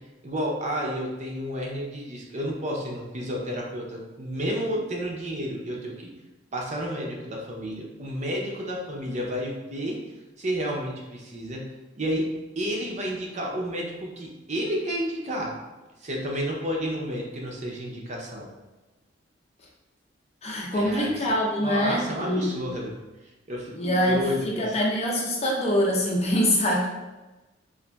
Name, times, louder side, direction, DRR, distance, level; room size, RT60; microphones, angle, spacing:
voice 1, 0.2-6.1 6.5-10.0 10.4-11.7 12.0-15.5 16.0-18.5 20.7-21.3 21.6-23.0 23.5-24.8, equal, 40° right, -1 dB, 0.5 m, -31 dB
voice 2, 20.4-22.5 23.7-26.9, equal, 35° left, -2 dB, 0.6 m, -24 dB
3.8 x 2.5 x 2.3 m, 1.1 s
head